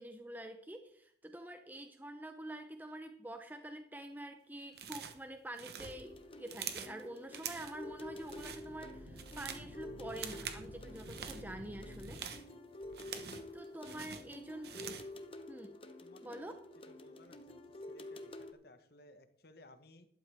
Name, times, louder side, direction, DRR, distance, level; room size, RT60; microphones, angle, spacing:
voice 1, 0.0-12.2 13.5-14.7 15.5-15.8 16.2-16.5, right 1 dB, 10° right, 6 dB, 0.7 m, -47 dB
sound 1, 4.7-5.2 5.5-7.0 7.3-7.8 8.2-8.6 9.0-9.7 10.1-10.6 10.9-11.4 11.9-13.5 13.8-15.1, right 8 dB, 60° right, 1.1 m, -45 dB
sound 2, 5.8-18.5, left 1 dB, 30° left, 0.9 m, -50 dB
sound 3, 7.4-12.2, equal, 90° right, 1.3 m, -52 dB
voice 2, 16.0-16.6 16.9-17.6 17.9-20.1, left 2 dB, 55° left, 9 dB, 1.2 m, -60 dB
12.5 x 11.5 x 3.5 m, 0.68 s
head